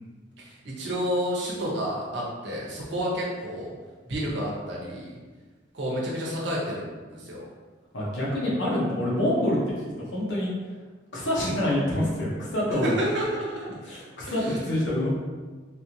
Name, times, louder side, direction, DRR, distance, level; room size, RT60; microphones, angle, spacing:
voice 1, 0.4-3.7 4.1-5.2 5.7-7.4 12.7-13.8 14.3-14.6, equal, 80° right, -4 dB, 0.9 m, -30 dB
voice 2, 7.9-9.8 10.1-10.5 11.1-12.9 13.8-15.1, left 1 dB, 80° left, -5 dB, 1.0 m, -26 dB
3.5 x 2.4 x 2.8 m, 1.4 s
head